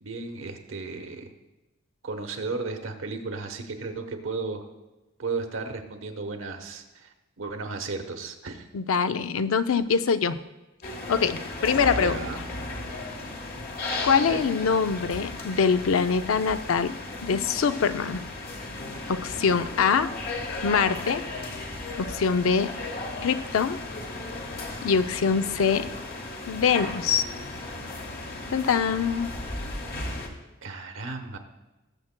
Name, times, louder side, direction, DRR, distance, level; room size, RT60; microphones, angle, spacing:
voice 1, 0.0-1.3 2.0-4.7 5.2-8.7 12.0-12.4 14.1-14.4 30.6-31.4, right 3 dB, 70° right, 6 dB, 1.0 m, -34 dB
voice 2, 8.7-10.4 11.1-12.2 14.0-16.9 17.2-18.2 19.1-20.1 20.6-21.2 22.0-22.7 23.2-23.8 24.8-25.9 26.5-27.2 28.5-29.3, left 6 dB, 85° left, 11 dB, 0.5 m, -24 dB
sound 1, 10.8-30.3, left 2 dB, 45° left, 1.3 m, -35 dB
19.0 x 7.4 x 2.2 m, 1.1 s
head